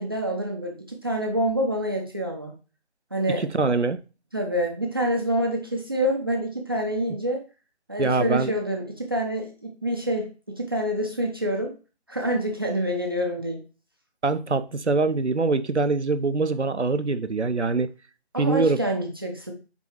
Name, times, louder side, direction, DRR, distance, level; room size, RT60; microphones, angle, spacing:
voice 1, 0.0-2.5 3.1-3.4 4.3-7.4 7.9-11.7 12.1-13.6 18.3-19.5, equal, 20° right, 0.7 m, -27 dB
voice 2, 3.4-4.0 8.0-8.5 14.2-17.9 18.4-18.8, right 3 dB, 90° right, 0.8 m, -23 dB
9.3 x 3.8 x 3.1 m
figure-of-eight pair, 155°, 33 cm